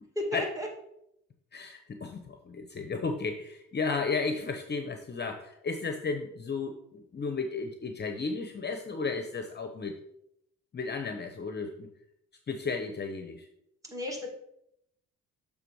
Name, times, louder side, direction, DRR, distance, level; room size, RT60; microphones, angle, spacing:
voice 1, 0.2-0.7 13.8-14.3, left 1 dB, 10° right, 0 dB, 2.1 m, -33 dB
voice 2, 1.5-9.9 10.7-11.9 12.5-13.5, left 4 dB, 35° left, 5 dB, 0.8 m, -34 dB
6.8 x 3.5 x 6.2 m, 0.78 s
cardioid pair, 90°, 30 cm